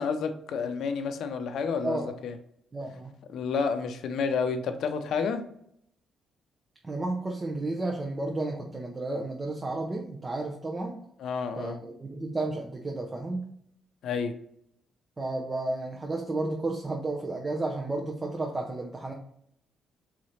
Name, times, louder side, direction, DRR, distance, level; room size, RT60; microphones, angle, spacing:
voice 1, 0.0-2.3 3.3-5.4 11.2-11.8 14.0-14.3, left 5 dB, 70° left, 7 dB, 0.5 m, -30 dB
voice 2, 2.7-3.1 6.8-11.0 11.6-13.5 15.2-19.1, right 2 dB, 25° right, 1 dB, 0.7 m, -32 dB
3.9 x 3.1 x 4.2 m, 0.67 s
cardioid pair, 90°, 0 cm